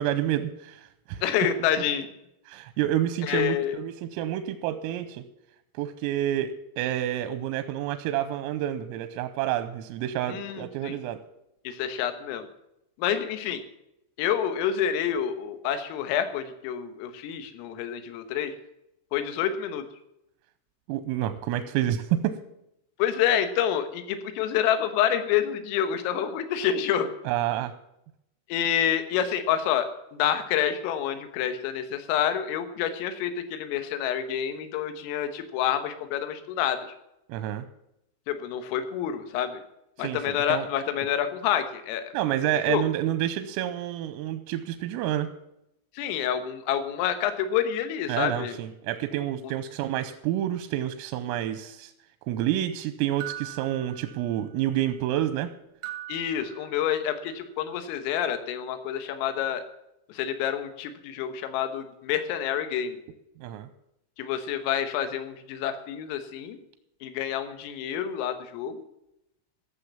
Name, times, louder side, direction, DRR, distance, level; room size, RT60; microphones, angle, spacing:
voice 1, 0.0-1.2 2.5-5.2 5.8-11.2 20.9-22.3 27.3-27.7 37.3-37.7 40.0-40.7 42.1-45.3 48.1-51.9 52.3-55.5 63.4-63.7, right 12 dB, 90° right, 9 dB, 3.4 m, -29 dB
voice 2, 1.2-2.1 3.2-3.7 10.3-11.0 11.7-12.5 13.0-13.6 14.2-18.5 19.1-19.9 23.0-27.1 28.5-36.9 38.3-39.6 40.0-42.1 42.7-42.8 46.0-48.6 56.1-59.6 60.1-63.0 64.2-66.6 67.0-68.8, left 9 dB, 85° left, 9 dB, 3.9 m, -28 dB
sound 1, 53.2-54.7 55.8-57.3, right 13 dB, 75° right, 1.6 m, -41 dB
14.5 x 7.5 x 7.2 m, 0.83 s
omnidirectional pair, 5.9 m